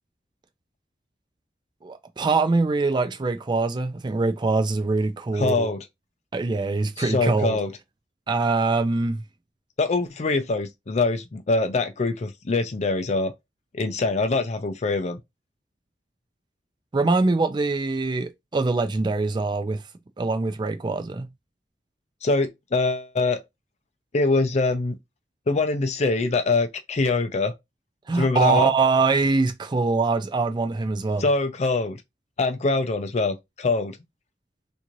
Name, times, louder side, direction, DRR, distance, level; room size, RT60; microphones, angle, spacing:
voice 1, 1.8-5.7 6.3-7.6 8.3-9.2 16.9-19.8 20.2-21.3 28.1-31.2, right 3 dB, 25° right, 0.4 m, -23 dB
voice 2, 5.3-5.8 7.0-7.7 9.8-13.3 13.7-15.2 22.2-23.4 24.1-25.0 25.5-27.5 28.1-28.7 31.2-32.0 32.4-34.0, left 3 dB, 40° left, 0.5 m, -24 dB
3.7 x 2.6 x 3.0 m
head